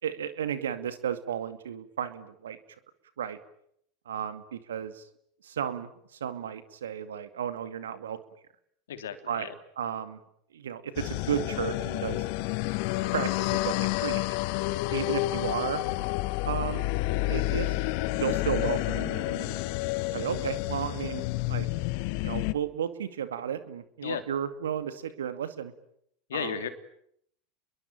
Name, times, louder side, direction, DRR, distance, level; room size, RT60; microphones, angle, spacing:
voice 1, 0.0-2.6 3.2-3.4 4.1-5.0 5.4-5.9 6.2-8.2 9.3-9.5 9.8-10.2 10.5-12.3 13.1-13.7 14.0-14.2 14.9-15.8 16.5-16.9 17.3-17.8 18.1-19.6 20.1-21.7 22.2-25.7 26.3-26.7, right 9 dB, 75° right, 11 dB, 2.2 m, -33 dB
voice 2, 8.9-9.5 24.0-24.2 26.3-26.7, left 8 dB, 75° left, 9 dB, 3.0 m, -34 dB
sound 1, 11.0-22.5, left 19 dB, 55° left, 1.0 m, -29 dB
30.0 x 22.0 x 8.9 m, 0.72 s
figure-of-eight pair, 80°, 0 cm